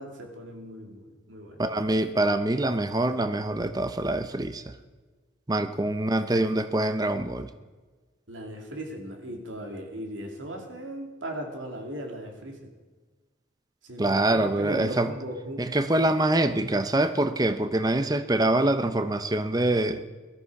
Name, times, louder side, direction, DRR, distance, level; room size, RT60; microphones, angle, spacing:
voice 1, 0.0-1.6 8.3-12.7 13.8-15.7, right 1 dB, 85° right, 3 dB, 2.6 m, -38 dB
voice 2, 1.6-4.7 5.5-7.5 14.0-15.1 15.6-20.0, right 1 dB, 20° right, 11 dB, 0.6 m, -25 dB
17.0 x 13.0 x 4.8 m, 1.4 s
head